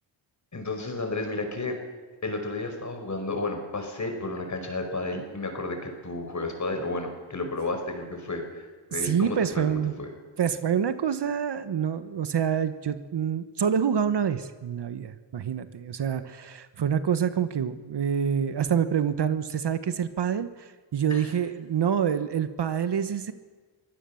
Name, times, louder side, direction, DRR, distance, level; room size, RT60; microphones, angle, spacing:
voice 1, 0.5-1.8 2.2-8.6 8.9-10.1 21.1-21.3, left 2 dB, 35° left, 5 dB, 5.1 m, -32 dB
voice 2, 9.0-9.9 10.4-23.3, right 8 dB, 60° right, 11 dB, 1.3 m, -27 dB
24.0 x 16.0 x 7.1 m, 1.4 s
cardioid pair, 85°, 46 cm